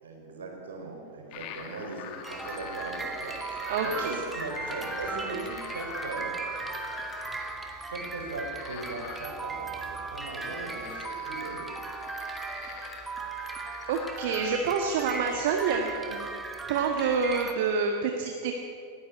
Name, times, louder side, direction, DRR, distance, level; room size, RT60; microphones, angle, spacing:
voice 1, 0.0-6.3 7.8-11.7, right 3 dB, 65° right, 1 dB, 4.9 m, -39 dB
sound 1, 1.3-16.3, left 7 dB, 45° left, 2.0 m, -45 dB
sound 2, 2.2-17.5, right 4 dB, 10° right, 2.2 m, -37 dB
voice 2, 3.7-4.2 5.3-5.4 12.6-13.0 13.9-16.3 16.7-18.5, right 5 dB, 50° right, 4 dB, 1.6 m, -28 dB
20.0 x 15.5 x 8.5 m, 2.5 s
figure-of-eight pair, 90°, 0 cm